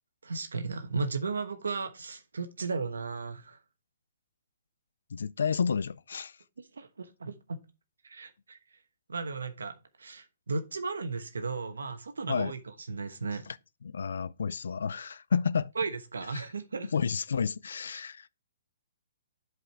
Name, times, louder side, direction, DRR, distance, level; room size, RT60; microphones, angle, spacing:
voice 1, 0.2-3.6 6.6-7.6 8.0-8.6 9.1-13.5 15.7-16.9 17.9-18.0, right 4 dB, 90° right, 1.1 m, -35 dB
voice 2, 5.1-6.3 12.3-12.5 13.9-15.7 16.3-16.4 16.9-18.3, left 6 dB, 75° left, 0.4 m, -30 dB
7.9 x 4.7 x 4.6 m
hypercardioid pair, 150°, 0 cm